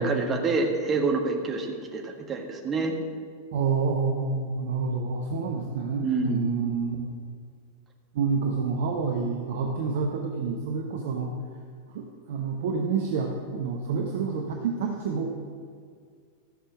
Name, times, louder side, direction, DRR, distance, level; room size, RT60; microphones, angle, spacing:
voice 1, 0.0-2.9 6.0-6.4, right 3 dB, 20° right, 2 dB, 1.7 m, -27 dB
voice 2, 3.5-7.0 8.1-11.3 11.9-15.3, right 5 dB, 55° right, 1 dB, 1.1 m, -28 dB
14.0 x 6.7 x 6.1 m, 2.1 s
figure-of-eight pair, 90°, 0 cm